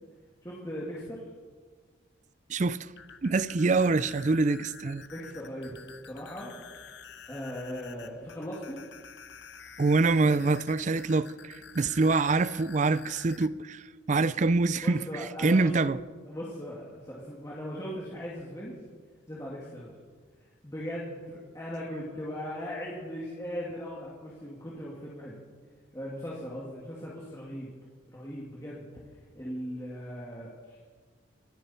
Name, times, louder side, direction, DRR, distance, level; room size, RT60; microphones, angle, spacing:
voice 1, 0.4-1.3 5.0-6.9 7.3-8.9 14.8-15.9 16.3-18.8 19.3-20.0 20.6-25.4 25.9-27.7 28.1-28.9 29.3-30.8, equal, 15° left, 2.4 m, -39 dB
voice 2, 2.5-2.9 3.2-5.0 9.8-13.8 14.1-15.0 15.4-16.0, right 3 dB, 40° right, 0.4 m, -25 dB
sound 1, 2.8-13.5, left 6 dB, 60° left, 0.9 m, -49 dB
27.5 x 10.0 x 4.4 m
head